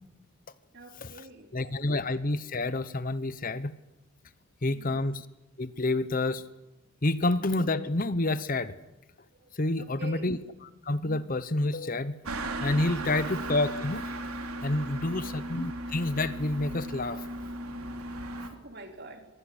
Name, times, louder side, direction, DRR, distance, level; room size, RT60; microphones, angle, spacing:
voice 1, 0.7-1.5 4.7-5.0 9.4-10.3 15.0-15.4 18.2-19.3, right 1 dB, 50° right, 5 dB, 3.7 m, -46 dB
voice 2, 1.5-3.7 4.6-5.2 5.6-6.4 7.0-8.7 9.5-10.4 10.8-12.2 12.6-14.2 14.6-17.2, left 2 dB, 40° left, 15 dB, 0.9 m, -28 dB
sound 1, 12.2-18.5, right 1 dB, 85° right, 3.8 m, -36 dB
24.5 x 23.5 x 10.0 m, 1.0 s
head